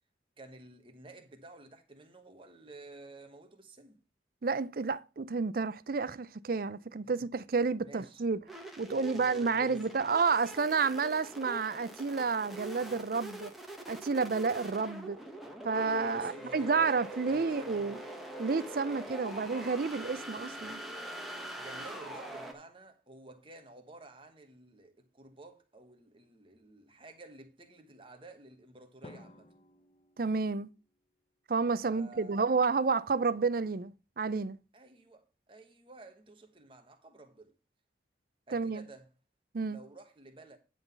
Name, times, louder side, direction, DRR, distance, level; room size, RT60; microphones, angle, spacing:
voice 1, 0.4-4.0 7.9-8.2 8.9-10.1 16.1-16.9 17.2-18.0 21.6-29.5 31.8-32.5 34.7-37.5 38.5-39.1 39.7-40.6, right 2 dB, 30° right, 1.2 m, -52 dB
voice 2, 4.4-8.4 8.8-13.5 13.9-15.2 15.6-18.0 18.4-20.8 30.2-30.7 31.5-34.6 38.5-38.8 39.5-39.8, right 4 dB, 50° right, 0.5 m, -30 dB
sound 1, 8.5-22.5, equal, ahead, 1.3 m, -43 dB
Drum, 29.0-31.1, left 2 dB, 30° left, 0.7 m, -55 dB
10.5 x 3.9 x 7.0 m
head